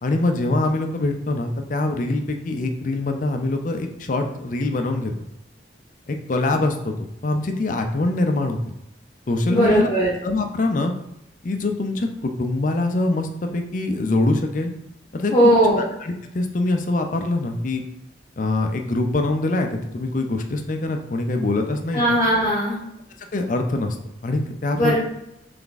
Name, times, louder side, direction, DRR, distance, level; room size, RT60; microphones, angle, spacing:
voice 1, 0.0-5.1 6.1-6.9 7.2-8.6 9.3-9.9 10.2-10.9 11.4-14.7 15.1-15.3 16.0-17.8 18.4-22.0 23.3-24.0 24.2-25.0, left 2 dB, 45° left, 5 dB, 0.5 m, -23 dB
voice 2, 9.5-10.1 15.3-15.8 21.9-22.8 24.8-25.0, equal, 25° left, -6 dB, 0.8 m, -18 dB
3.5 x 3.4 x 3.9 m, 0.84 s
head